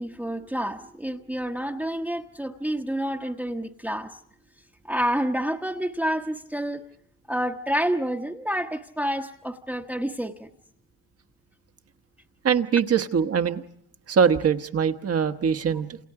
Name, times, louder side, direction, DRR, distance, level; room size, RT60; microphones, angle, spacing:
voice 1, 0.0-4.1 4.8-6.8 7.3-10.5, equal, 5° right, 2 dB, 1.1 m, -28 dB
voice 2, 12.4-13.6 14.1-16.0, right 7 dB, 40° right, 8 dB, 1.2 m, -22 dB
29.0 x 28.5 x 4.8 m, 0.69 s
cardioid pair, 140°, 38 cm